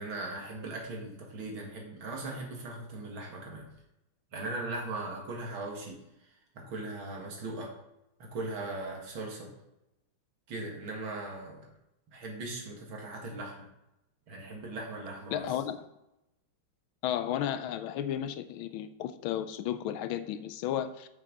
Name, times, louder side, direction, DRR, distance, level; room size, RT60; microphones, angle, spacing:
voice 1, 0.0-3.7 4.3-6.0 6.5-7.7 8.2-9.5 10.5-11.7 12.1-13.7 14.3-15.6, right 2 dB, 75° right, 0 dB, 2.6 m, -39 dB
voice 2, 15.3-15.8 17.0-21.1, left 10 dB, 85° left, 11 dB, 1.4 m, -33 dB
8.6 x 6.7 x 3.9 m, 0.88 s
omnidirectional pair, 2.2 m